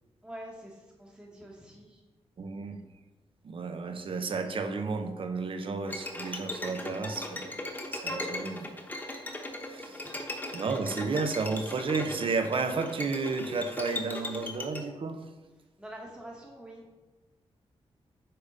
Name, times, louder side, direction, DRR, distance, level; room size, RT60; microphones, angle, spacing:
voice 1, 0.2-2.0 9.9-10.1 15.8-16.9, right 1 dB, 10° right, -2 dB, 1.1 m, -46 dB
voice 2, 2.4-2.8 3.4-7.6 7.9-8.7 9.6-10.1 10.5-15.3, right 4 dB, 55° right, 7 dB, 0.7 m, -32 dB
Bowed string instrument, 5.9-14.8, left 1 dB, 15° left, 1.1 m, -38 dB
8.6 x 3.6 x 5.4 m, 1.2 s
wide cardioid pair, 125°, 11 cm